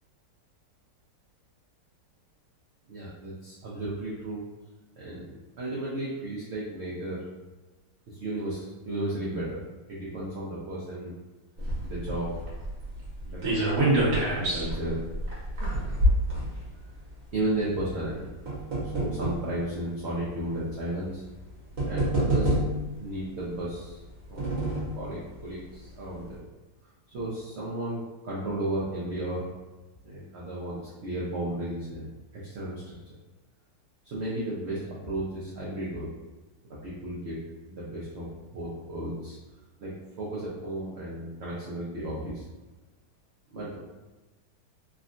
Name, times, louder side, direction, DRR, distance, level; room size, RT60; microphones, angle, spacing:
voice 1, 2.9-4.4 5.0-7.2 8.1-9.6 9.9-11.1 11.8-12.3 13.2-13.6 14.1-15.0 15.6-15.9 17.3-18.3 18.8-21.2 21.9-22.6 23.0-24.0 24.3-24.5 24.9-26.4 27.1-29.5 30.0-32.9 34.0-36.1 36.8-37.4 37.7-39.4 39.8-39.9 40.2-42.5 43.5-43.8, right 1 dB, 80° right, -7 dB, 0.6 m, -34 dB
sound 1, 11.6-17.0 17.9-19.5 20.3-20.4 21.4-21.5 21.8-23.0 23.9-25.0 25.4-25.5 25.8-25.9, right 1 dB, 60° right, 1.3 m, -27 dB
3.5 x 2.1 x 2.5 m, 1.2 s
omnidirectional pair, 1.9 m